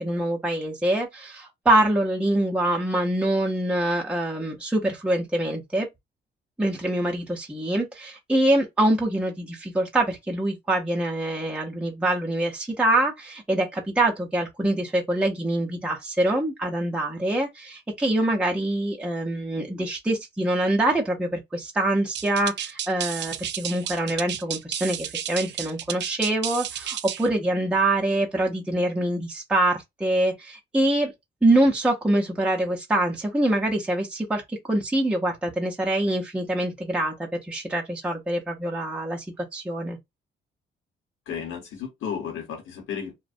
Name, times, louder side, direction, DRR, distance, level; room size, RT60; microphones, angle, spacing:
voice 1, 0.0-5.9 6.6-31.1 31.4-40.0, right 1 dB, 5° right, 0.5 m, -25 dB
sound 1, 22.1-27.3, right 10 dB, 65° right, 0.4 m, -32 dB
voice 2, 41.3-43.1, left 7 dB, 80° left, 0.9 m, -33 dB
2.5 x 2.1 x 2.4 m
cardioid pair, 90°, 20 cm